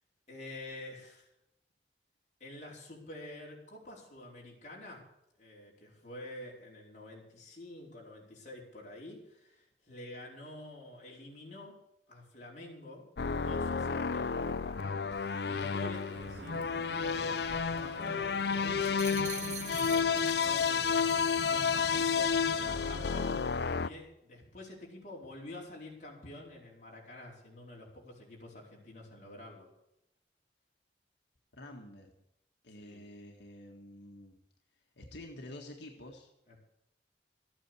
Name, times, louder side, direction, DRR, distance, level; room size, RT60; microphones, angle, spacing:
voice 1, 0.3-1.3 2.4-5.1 5.4-11.8 12.1-13.1 13.3-15.1 15.4-19.4 19.8-29.7 32.8-33.0 36.5-36.6, left 1 dB, 45° left, -3 dB, 4.7 m, -48 dB
sound 1, 13.2-23.9, left 6 dB, 70° left, 0.6 m, -31 dB
Wind / Thunder / Rain, 15.1-23.4, right 3 dB, 75° right, 0.8 m, -47 dB
sound 2, 18.8-20.7 21.0-21.3, right 8 dB, 40° right, 1.1 m, -44 dB
voice 2, 31.5-32.1 32.6-34.4 34.7-36.3, left 1 dB, 85° left, 1 dB, 1.9 m, -49 dB
14.0 x 9.0 x 8.4 m, 0.83 s
head